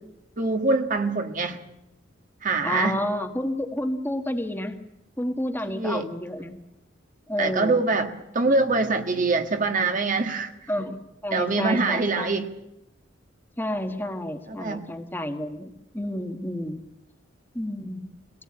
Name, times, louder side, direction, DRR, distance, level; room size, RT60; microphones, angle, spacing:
voice 1, 0.4-1.6 2.4-3.0 5.7-6.1 7.4-10.5 11.3-12.5 14.6-14.8, right 3 dB, 40° right, 1.6 m, -24 dB
voice 2, 2.6-4.8 5.2-6.6 7.3-7.8 10.7-12.3 13.6-16.8 17.5-18.1, left 1 dB, 10° left, 1.5 m, -30 dB
23.5 x 18.0 x 8.8 m
head